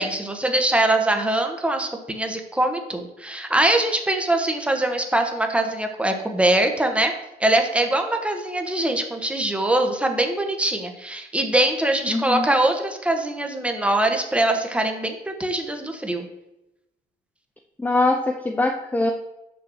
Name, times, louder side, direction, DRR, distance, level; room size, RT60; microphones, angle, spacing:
voice 1, 0.0-7.1 7.4-16.3, right 1 dB, 5° right, 4 dB, 1.1 m, -22 dB
voice 2, 12.1-12.5 17.8-19.1, left 2 dB, 10° left, 3 dB, 0.6 m, -22 dB
6.2 x 4.6 x 6.3 m, 0.93 s
cardioid pair, 110°, 17 cm